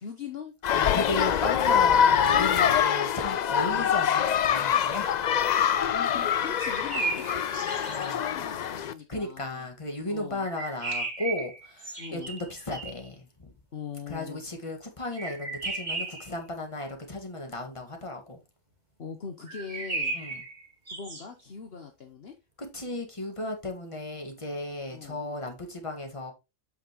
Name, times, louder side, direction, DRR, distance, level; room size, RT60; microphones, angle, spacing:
voice 1, 0.0-0.5 1.9-2.1 2.5-2.8 3.6-3.8 5.9-9.7 10.1-10.5 12.0-12.3 13.7-14.4 19.0-20.2 20.9-22.3 24.9-25.2, left 6 dB, 55° left, 1.2 m, -41 dB
sound 1, 0.6-8.9, left 8 dB, 80° left, 0.4 m, -24 dB
voice 2, 0.7-5.1 5.8-5.9 7.9-8.2 9.1-13.5 14.1-18.4 20.1-20.4 22.7-26.3, left 2 dB, 25° left, 1.7 m, -35 dB
sound 2, 6.5-8.1 10.4-13.1 15.2-16.3 19.5-21.2, right 3 dB, 35° right, 1.7 m, -35 dB
8.4 x 5.8 x 3.0 m
omnidirectional pair, 1.3 m